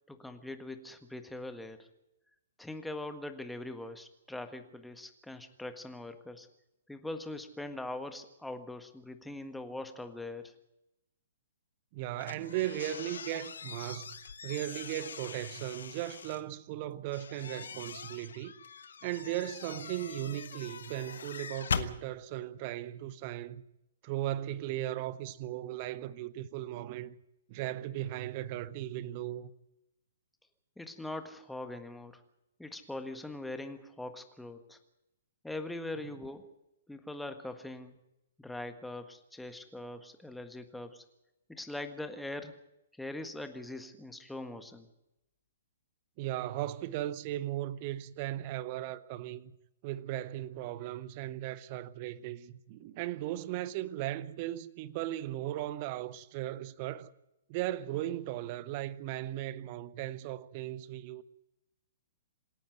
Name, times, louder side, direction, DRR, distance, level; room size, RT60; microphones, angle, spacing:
voice 1, 0.1-1.9 2.6-6.5 6.9-10.5 30.8-32.2 32.6-34.8 35.4-36.5 36.9-38.0 38.4-41.0 41.5-42.6 43.0-44.9, left 2 dB, 5° left, 1.6 m, -42 dB
voice 2, 11.9-18.5 19.0-23.6 24.0-27.2 27.5-29.5 46.2-49.5 49.8-57.1 57.5-61.2, right 14 dB, 35° right, 0.9 m, -37 dB
sound 1, 12.2-16.4 17.1-21.9, left 6 dB, 60° left, 1.3 m, -41 dB
26.5 x 10.5 x 9.3 m
figure-of-eight pair, 115°, 0 cm